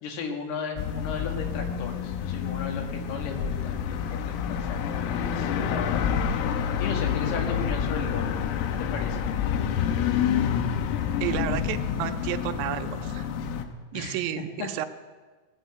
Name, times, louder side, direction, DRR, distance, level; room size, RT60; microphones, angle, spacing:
voice 1, 0.0-6.0 6.8-8.3 8.8-9.2 13.9-14.7, left 4 dB, 60° left, 2 dB, 3.3 m, -35 dB
sound 1, 0.8-13.7, left 8 dB, 85° left, 3.7 m, -28 dB
voice 2, 11.2-13.3 13.9-14.9, right 12 dB, 85° right, 8 dB, 3.3 m, -31 dB
18.0 x 8.3 x 7.9 m, 1.3 s
omnidirectional pair, 6.0 m